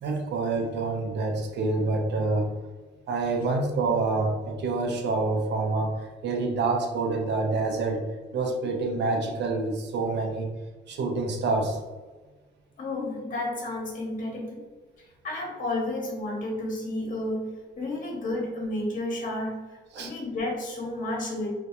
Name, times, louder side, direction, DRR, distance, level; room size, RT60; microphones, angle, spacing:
voice 1, 0.0-2.5 3.1-8.0 8.3-10.5 10.9-11.8 19.9-20.1, right 3 dB, 60° right, 3 dB, 0.5 m, -27 dB
voice 2, 12.8-14.6 15.2-17.5 17.8-21.5, left 1 dB, 40° left, -2 dB, 0.8 m, -31 dB
2.3 x 2.1 x 2.8 m, 1.3 s
cardioid pair, 90°, 20 cm